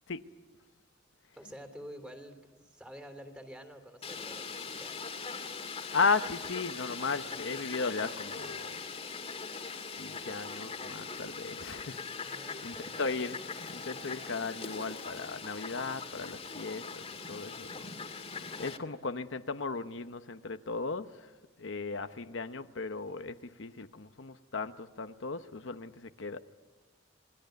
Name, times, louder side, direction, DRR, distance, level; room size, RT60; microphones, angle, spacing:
voice 1, 1.4-5.0 12.2-13.1, equal, 5° right, 3.3 m, -49 dB
Fowl, 4.0-18.8, left 4 dB, 30° left, 2.1 m, -41 dB
voice 2, 5.9-8.8 10.0-13.4 13.7-17.9 18.6-21.3 21.6-26.4, left 4 dB, 70° left, 0.9 m, -36 dB
27.5 x 21.0 x 9.4 m
head